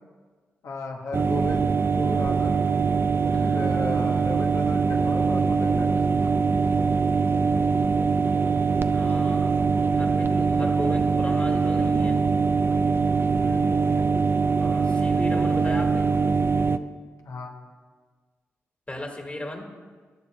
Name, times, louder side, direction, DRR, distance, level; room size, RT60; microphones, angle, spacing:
voice 1, 0.6-2.6 3.5-6.2 13.3-13.6 17.2-17.6, left 3 dB, 80° left, 1 dB, 1.2 m, -36 dB
sound 1, 1.1-16.8, right 5 dB, 45° right, 0.4 m, -22 dB
voice 2, 3.3-3.7 8.9-9.6 9.9-12.2 14.6-16.1 18.9-19.7, left 1 dB, 25° left, 2 dB, 1.7 m, -35 dB
19.0 x 7.0 x 2.2 m, 1.5 s
supercardioid pair, 45°, 5 cm